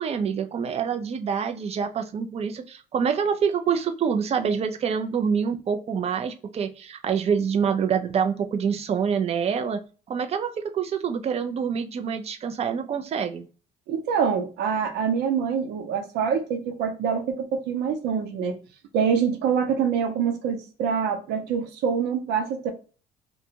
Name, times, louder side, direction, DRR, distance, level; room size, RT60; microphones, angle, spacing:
voice 1, 0.0-9.8 10.1-13.5, right 7 dB, 35° right, 0.5 m, -26 dB
voice 2, 13.9-18.6 18.9-22.7, right 7 dB, 80° right, 0.7 m, -25 dB
2.6 x 2.2 x 2.8 m
cardioid pair, 110°, 17 cm